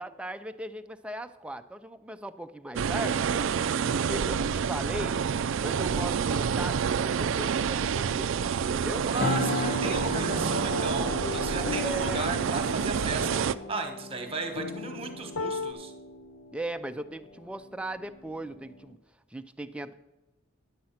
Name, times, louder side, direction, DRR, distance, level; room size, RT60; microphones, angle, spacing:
voice 1, 0.0-3.2 3.9-5.2 5.6-9.1 11.6-12.3 16.5-19.0 19.3-19.9, right 1 dB, 5° right, 9 dB, 0.4 m, -38 dB
sound 1, 2.8-13.5, right 7 dB, 70° right, 0.4 m, -28 dB
voice 2, 9.1-15.9, right 3 dB, 30° right, 5 dB, 1.2 m, -35 dB
sound 2, 9.2-18.9, left 2 dB, 40° left, 0.6 m, -37 dB
sound 3, 10.1-15.7, left 4 dB, 85° left, 0.7 m, -38 dB
10.5 x 7.7 x 5.7 m, 1.0 s
head